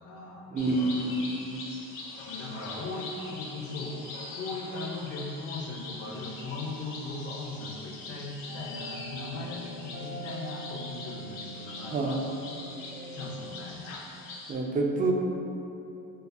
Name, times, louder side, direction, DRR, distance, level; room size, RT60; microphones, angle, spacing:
voice 1, 0.0-0.8 2.3-4.0 4.4-12.2 13.1-14.1, left 3 dB, 45° left, -1 dB, 0.7 m, -38 dB
voice 2, 0.5-1.7 11.9-12.2 14.5-15.1, right 2 dB, 25° right, 1 dB, 0.4 m, -28 dB
sound 1, 0.6-14.5, left 3 dB, 80° left, 0.7 m, -43 dB
sound 2, 8.5-13.6, right 1 dB, 75° right, 0.9 m, -43 dB
4.2 x 2.0 x 3.3 m, 2.9 s
cardioid pair, 95°, 32 cm